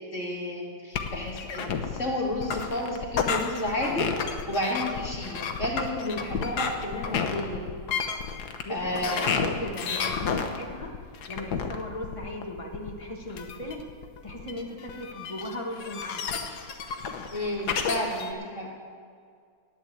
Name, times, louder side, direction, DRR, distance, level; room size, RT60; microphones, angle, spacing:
voice 1, 0.1-1.6 1.9-4.1 4.5-7.6 8.7-9.3 17.3-18.7, left 1 dB, 35° left, -3 dB, 2.8 m, -31 dB
sound 1, 0.9-18.3, left 6 dB, 60° left, 1.3 m, -31 dB
voice 2, 8.6-10.9 11.3-13.8 14.2-16.5, left 1 dB, 15° left, 0 dB, 1.6 m, -37 dB
11.5 x 8.8 x 8.8 m, 2.1 s
omnidirectional pair, 2.3 m